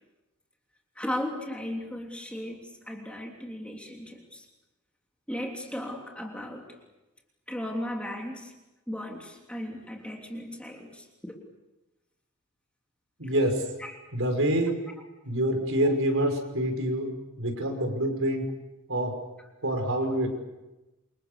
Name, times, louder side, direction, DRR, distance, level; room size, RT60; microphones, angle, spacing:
voice 1, 1.0-4.4 5.3-6.7 7.5-8.5 8.9-11.3 13.2-13.3 13.8-13.9, left 1 dB, 5° left, 0 dB, 3.2 m, -36 dB
voice 2, 13.2-13.6 14.1-14.7 15.2-17.1 17.4-18.5 18.9-19.1 19.6-20.4, right 1 dB, 60° right, 4 dB, 5.8 m, -26 dB
28.5 x 26.5 x 6.9 m, 1.1 s
head